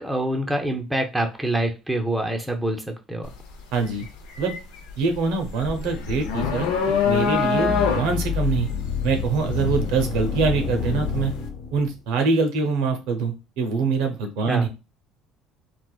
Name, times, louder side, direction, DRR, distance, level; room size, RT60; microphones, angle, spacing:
voice 1, 0.0-3.3 14.5-14.7, right 1 dB, 5° right, 3 dB, 0.5 m, -26 dB
sound 1, 3.2-3.5 3.9-10.9, left 6 dB, 85° left, 0.5 m, -25 dB
voice 2, 3.7-4.1 4.4-4.5 5.0-6.7 7.0-8.7 9.0-11.3 11.7-14.7, right 4 dB, 80° right, 5 dB, 0.6 m, -24 dB
sound 2, 5.6-12.0, left 6 dB, 70° left, 1.0 m, -29 dB
3.3 x 2.0 x 2.3 m, 0.28 s
supercardioid pair, 85°, 0 cm